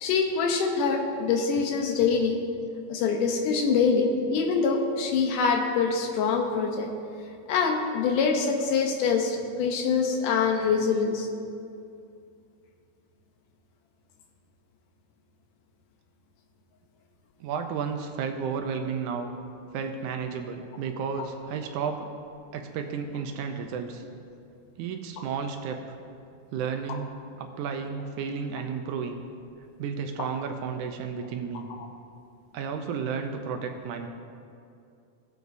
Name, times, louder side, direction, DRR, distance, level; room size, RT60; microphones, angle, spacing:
voice 1, 0.0-2.4 2.9-6.9 7.5-11.3, left 5 dB, 80° left, 3 dB, 2.4 m, -24 dB
voice 2, 17.4-19.3 19.7-22.2 22.5-24.0 24.8-25.8 26.5-27.1 27.4-29.2 29.8-31.7 32.5-34.1, right 6 dB, 80° right, 5 dB, 2.0 m, -32 dB
18.0 x 8.0 x 2.7 m, 2.5 s
omnidirectional pair, 3.7 m